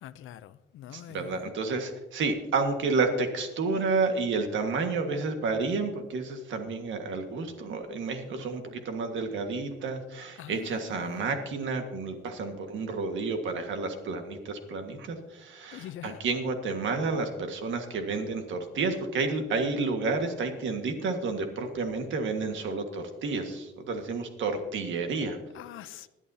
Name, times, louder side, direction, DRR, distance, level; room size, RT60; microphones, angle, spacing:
voice 1, 0.0-1.4 10.4-11.3 15.7-16.2 25.5-26.1, left 12 dB, 90° left, 0.5 m, -44 dB
voice 2, 0.9-25.4, right 4 dB, 75° right, 1.7 m, -30 dB
20.0 x 11.0 x 2.8 m
cardioid pair, 140°, 20 cm